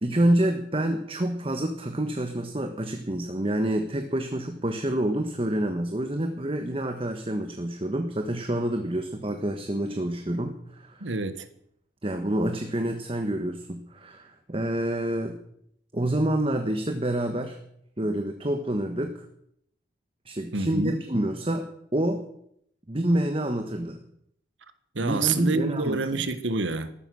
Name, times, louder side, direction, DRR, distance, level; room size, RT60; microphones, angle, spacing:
voice 1, 0.0-11.1 12.0-15.4 15.9-17.6 18.0-19.1 20.2-21.7 21.9-22.2 22.9-24.0 25.0-26.0, right 1 dB, 30° right, 1.3 m, -27 dB
voice 2, 11.0-11.5 20.5-21.0 24.9-26.9, right 3 dB, 90° right, 1.4 m, -28 dB
14.0 x 13.0 x 6.4 m
head